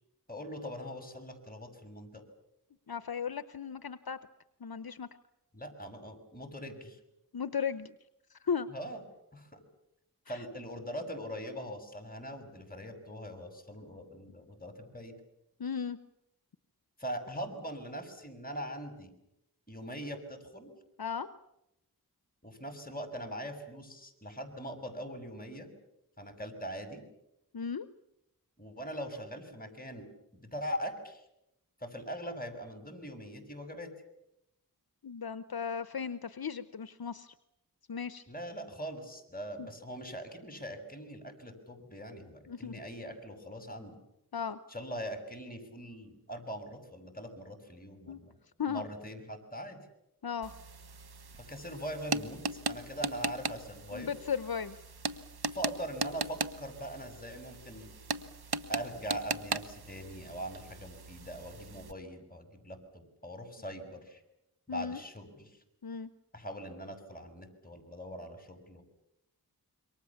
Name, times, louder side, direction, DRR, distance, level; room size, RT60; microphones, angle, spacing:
voice 1, 0.3-2.2 5.5-7.0 8.7-9.0 9.3-9.6 10.3-15.1 17.0-19.1 19.7-20.7 22.4-25.7 26.2-27.0 28.6-30.1 30.4-31.2 31.8-33.9 38.3-44.0 44.7-48.4 48.7-49.8 51.5-54.1 55.5-57.9 58.7-64.2 64.7-65.6 66.3-68.8, equal, 20° left, 6 dB, 6.3 m, -42 dB
voice 2, 2.9-4.2 4.6-5.1 7.3-7.9 8.3-8.7 10.3-10.4 15.6-16.0 21.0-21.3 27.5-27.9 35.0-37.3 37.9-38.2 39.6-39.7 42.5-42.7 44.3-44.6 48.1-48.2 48.6-48.9 50.2-50.5 53.9-54.8 64.7-65.0 65.8-66.1, left 6 dB, 70° left, 13 dB, 0.9 m, -36 dB
sound 1, 50.4-61.9, right 4 dB, 75° right, 1.2 m, -39 dB
27.5 x 24.0 x 7.2 m, 0.85 s
wide cardioid pair, 50°, 38 cm